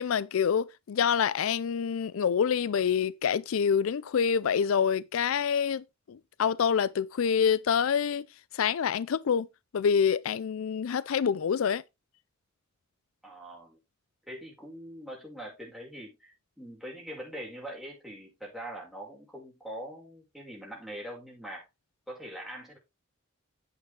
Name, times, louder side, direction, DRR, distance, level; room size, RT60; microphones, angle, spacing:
voice 1, 0.0-8.3 8.5-9.5 9.7-11.8, left 7 dB, 75° left, 0.4 m, -26 dB
voice 2, 13.2-13.8 14.3-21.6 22.1-22.8, right 1 dB, ahead, 6.0 m, -43 dB
9.0 x 8.1 x 3.7 m
head